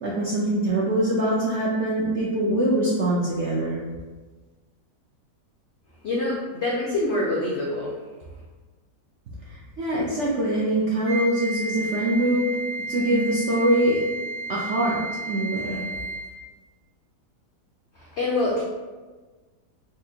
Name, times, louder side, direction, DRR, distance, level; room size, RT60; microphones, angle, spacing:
voice 1, 0.0-3.8 9.5-12.5 12.9-14.0 14.5-15.9, right 1 dB, 70° right, -6 dB, 0.6 m, -23 dB
voice 2, 6.0-7.9 18.0-18.6, left 2 dB, 90° left, -4 dB, 0.6 m, -25 dB
Wind instrument woodwind instrument, 11.0-16.4, right 2 dB, 55° right, 1.7 m, -33 dB
4.2 x 2.5 x 2.7 m, 1.3 s
omnidirectional pair, 1.8 m